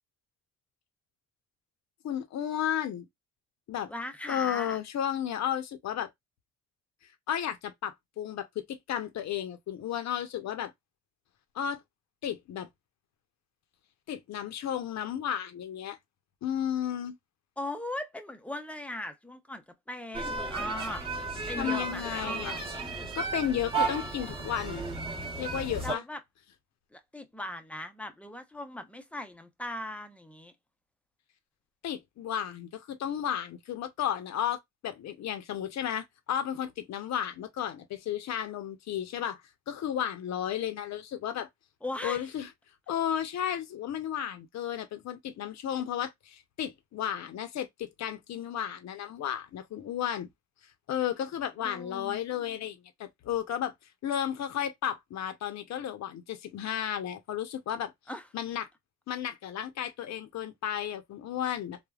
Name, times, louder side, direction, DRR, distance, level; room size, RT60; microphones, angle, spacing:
voice 1, 2.0-3.1 3.7-3.9 4.3-6.1 7.3-10.7 11.5-11.8 12.2-12.7 14.1-16.0 16.4-17.2 21.6-22.6 23.1-24.8 25.4-26.0 31.8-34.6 34.8-41.5 42.0-42.5 42.9-50.3 50.9-53.7 54.0-57.9 58.3-58.7 59.1-61.8, left 10 dB, 60° left, 0.7 m, -33 dB
voice 2, 3.9-4.8 17.6-21.0 21.5-22.5 25.8-26.2 26.9-30.5 41.8-42.2 51.6-52.2 58.1-58.3, left 1 dB, 5° left, 0.5 m, -38 dB
sound 1, 20.1-26.0, right 4 dB, 15° right, 0.9 m, -34 dB
3.4 x 2.2 x 2.3 m
cardioid pair, 90°, 30 cm